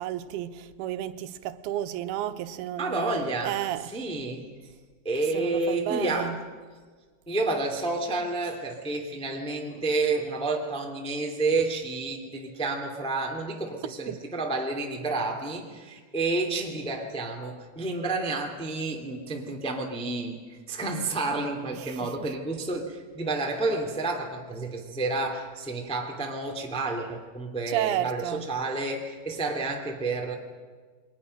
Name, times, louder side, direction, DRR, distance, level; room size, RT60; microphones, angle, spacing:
voice 1, 0.0-4.0 5.3-6.4 14.1-14.2 21.7-22.3 27.7-28.5, right 12 dB, 90° right, 3.0 m, -32 dB
voice 2, 2.8-3.6 3.9-4.4 5.0-6.4 7.3-30.3, right 3 dB, ahead, 1.8 m, -30 dB
29.0 x 23.0 x 6.6 m
omnidirectional pair, 4.4 m